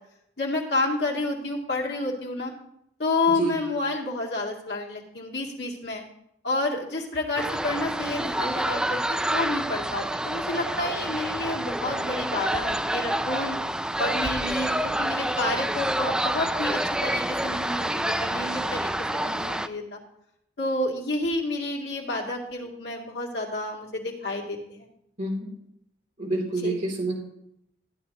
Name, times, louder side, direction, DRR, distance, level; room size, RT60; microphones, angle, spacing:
voice 1, 0.4-2.5 3.0-6.0 6.4-13.6 14.0-20.0 20.6-24.9 26.6-26.8, left 2 dB, 70° left, 0 dB, 2.2 m, -30 dB
sound 1, 7.4-19.7, right 1 dB, 5° right, 0.3 m, -28 dB
voice 2, 25.2-25.5 26.2-27.2, right 2 dB, 45° right, -2 dB, 3.0 m, -27 dB
14.5 x 9.8 x 2.9 m, 0.75 s
head